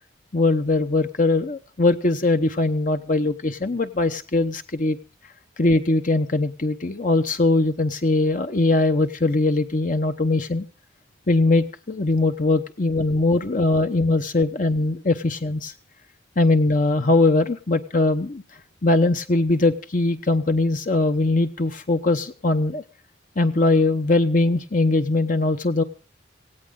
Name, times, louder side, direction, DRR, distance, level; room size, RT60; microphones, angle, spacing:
voice 1, 0.3-5.0 5.6-10.6 11.3-15.7 16.4-18.4 18.8-22.8 23.4-25.8, left 2 dB, 45° left, 8 dB, 0.9 m, -21 dB
17.5 x 17.0 x 3.8 m, 0.37 s
head